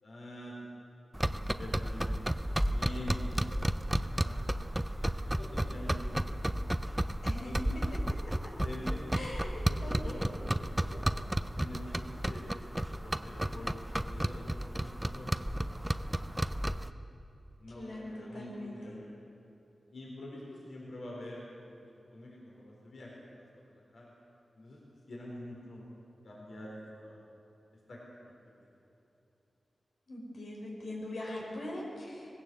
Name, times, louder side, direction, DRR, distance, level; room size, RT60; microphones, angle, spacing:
voice 1, 0.0-0.7 1.2-3.6 4.0-4.5 5.0-6.5 6.9-7.8 8.6-9.2 9.5-10.2 10.5-11.1 11.5-16.8 17.6-19.2 19.9-21.7 22.1-24.1 24.5-24.8 25.1-25.9 26.2-27.2 27.9-28.0 28.6-28.7, left 1 dB, 65° left, -3 dB, 4.3 m, -46 dB
sound 1, 1.1-16.9, right 1 dB, 10° right, 0.5 m, -33 dB
voice 2, 9.1-9.5 9.8-10.3 17.7-19.0 30.1-32.3, left 1 dB, 85° left, -3 dB, 4.6 m, -41 dB
20.5 x 16.5 x 7.9 m, 2.9 s
wide cardioid pair, 130°, 0 cm